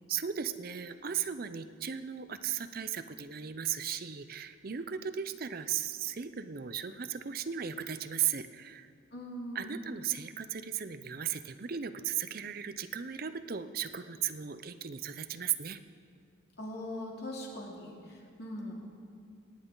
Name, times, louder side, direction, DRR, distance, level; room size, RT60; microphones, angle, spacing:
voice 1, 0.1-8.9 9.5-15.8, right 9 dB, 50° right, 11 dB, 0.6 m, -36 dB
voice 2, 9.1-9.9 16.6-18.8, left 1 dB, 55° left, -2 dB, 2.8 m, -41 dB
27.0 x 10.0 x 3.9 m, 2.3 s
head